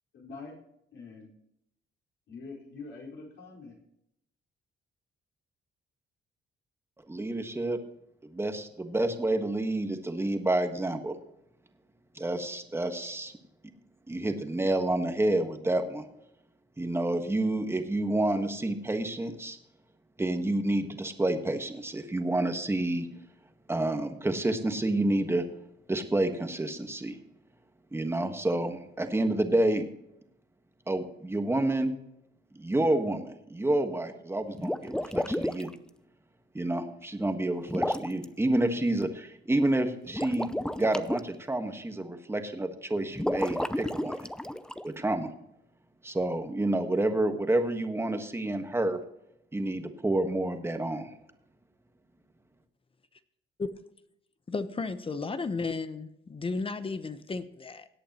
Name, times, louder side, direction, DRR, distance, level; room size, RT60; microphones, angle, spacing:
voice 1, 0.1-0.5 0.9-1.3 2.3-3.8, left 4 dB, 70° left, -3 dB, 4.8 m, -44 dB
voice 2, 7.1-7.8 8.2-11.2 12.1-13.3 14.1-16.1 16.8-19.6 20.2-23.1 23.7-25.4 25.9-27.2 27.9-29.9 30.9-31.9 32.6-35.7 36.5-40.5 40.8-44.3 44.8-45.3 46.0-49.0 49.5-51.1, right 1 dB, 10° right, 7 dB, 1.4 m, -29 dB
sound 1, 34.5-35.7 37.7-38.2 40.1-41.2 43.1-44.8, left 1 dB, 5° left, 0.5 m, -31 dB
voice 3, 54.5-57.9, left 4 dB, 25° left, 12 dB, 0.9 m, -34 dB
17.5 x 8.5 x 3.0 m, 0.78 s
cardioid pair, 90°, 20 cm